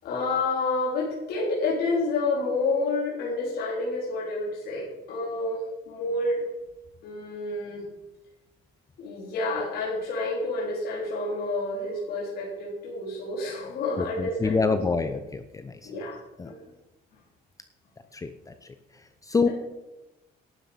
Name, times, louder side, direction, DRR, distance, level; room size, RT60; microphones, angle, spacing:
voice 1, 0.0-6.4 7.0-7.8 9.0-14.8 15.8-16.2 16.4-16.6 19.4-19.5, left 2 dB, 70° left, -4 dB, 4.1 m, -29 dB
voice 2, 14.0-15.9 16.4-16.5 18.1-18.5 19.2-19.5, left 4 dB, 20° left, 10 dB, 0.7 m, -26 dB
12.0 x 10.5 x 5.2 m, 0.98 s
cardioid pair, 110°, 17 cm